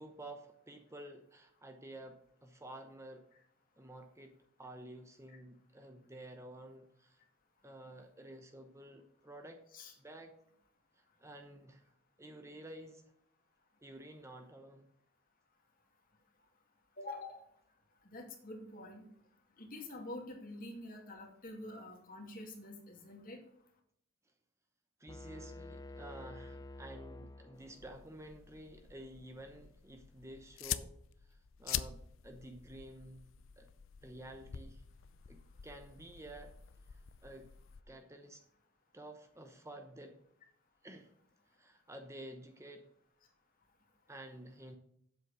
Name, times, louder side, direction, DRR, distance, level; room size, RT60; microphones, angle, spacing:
voice 1, 0.0-3.2 3.8-7.2 7.6-9.6 10.0-10.3 11.0-11.9 12.2-13.0 13.8-14.9 25.0-30.9 31.3-32.0 32.2-33.3 33.6-33.7 34.0-34.8 35.3-36.5 36.9-37.5 37.9-38.4 38.9-40.2 40.8-41.1 41.5-42.8 44.1-44.8, right 1 dB, 15° right, 6 dB, 0.9 m, -51 dB
voice 2, 17.0-17.4 18.1-19.1 19.6-23.4, left 2 dB, 45° left, 1 dB, 2.4 m, -47 dB
sound 1, 25.1-28.0, left 2 dB, 20° left, 0.5 m, -49 dB
sound 2, 27.5-37.8, left 10 dB, 75° left, 0.5 m, -46 dB
8.0 x 7.6 x 6.3 m, 0.70 s
head